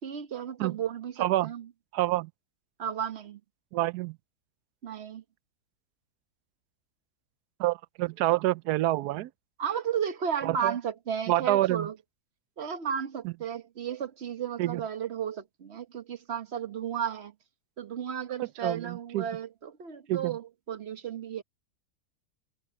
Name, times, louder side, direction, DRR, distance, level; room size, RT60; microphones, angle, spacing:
voice 1, 0.0-1.7 2.8-3.4 4.8-5.2 9.6-11.9 12.6-17.3 17.8-21.4, right 8 dB, 45° right, 1.3 m, -34 dB
voice 2, 1.2-1.5 1.9-2.3 3.7-4.2 7.6-9.3 10.4-10.8 11.3-11.9 13.2-13.3 14.6-14.8 18.4-19.3 20.1-20.4, right 15 dB, 85° right, 1.1 m, -27 dB
omnidirectional pair, 1.6 m